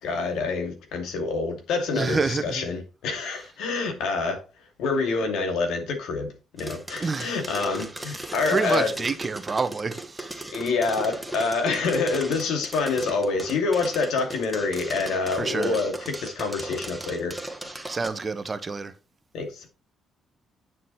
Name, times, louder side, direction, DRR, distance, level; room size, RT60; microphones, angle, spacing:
voice 1, 0.0-4.4 4.8-8.9 10.5-17.4 19.3-19.7, left 4 dB, 85° left, 2.4 m, -27 dB
voice 2, 1.9-2.7 7.0-7.4 8.5-10.3 15.3-15.8 17.9-18.9, right 4 dB, 30° right, 1.2 m, -27 dB
sound 1, 6.6-18.1, right 1 dB, 5° right, 1.6 m, -38 dB
9.8 x 6.3 x 4.2 m
cardioid pair, 90°, 0 cm